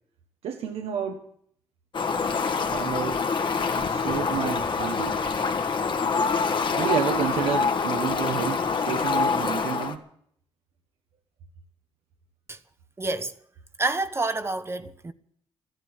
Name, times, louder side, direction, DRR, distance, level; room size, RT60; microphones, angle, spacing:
voice 1, 0.4-1.2 2.7-3.2 3.8-5.2 6.8-10.0, right 8 dB, 85° right, 1.4 m, -30 dB
Fowl, 1.9-10.0, left 5 dB, 50° left, 1.7 m, -26 dB
voice 2, 13.0-13.4 13.8-15.1, right 2 dB, 25° right, 1.0 m, -28 dB
13.5 x 10.5 x 9.8 m
cardioid pair, 75°, 10 cm